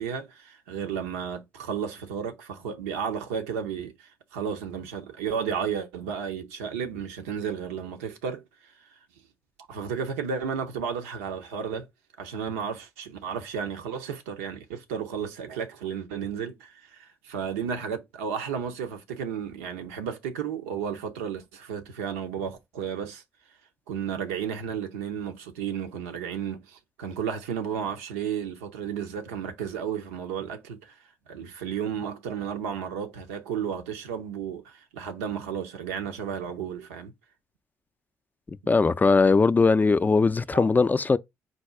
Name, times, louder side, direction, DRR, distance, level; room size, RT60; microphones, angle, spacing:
voice 1, 0.0-8.7 9.7-11.9 12.2-23.2 23.9-31.0 31.3-37.1 40.5-40.7, right 7 dB, 85° right, 0.6 m, -33 dB
voice 2, 38.7-41.2, left 4 dB, 25° left, 0.3 m, -20 dB
4.0 x 2.3 x 4.5 m
hypercardioid pair, 50°, 7 cm